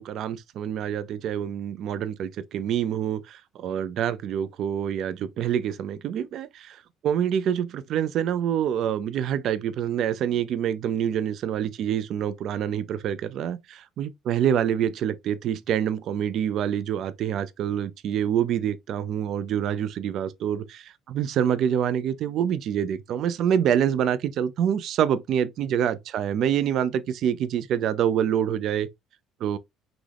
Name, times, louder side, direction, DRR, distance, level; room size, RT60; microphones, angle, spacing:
voice 1, 0.0-28.9 29.4-29.6, right 9 dB, 50° right, 0.5 m, -26 dB
6.0 x 2.4 x 3.4 m
cardioid pair, 150°, 0 cm